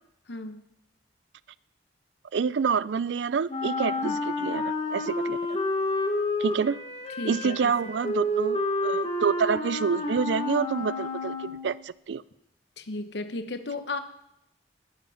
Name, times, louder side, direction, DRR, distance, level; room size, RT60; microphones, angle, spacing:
voice 1, 0.3-0.6 4.0-4.2 7.2-7.8 12.8-14.0, left 2 dB, 70° left, 10 dB, 1.0 m, -34 dB
voice 2, 2.3-5.6 6.4-6.8 7.2-12.2, right 6 dB, 75° right, 19 dB, 0.4 m, -28 dB
Wind instrument woodwind instrument, 3.5-11.8, left 2 dB, 35° left, 1.6 m, -30 dB
20.5 x 8.0 x 5.7 m, 0.80 s
head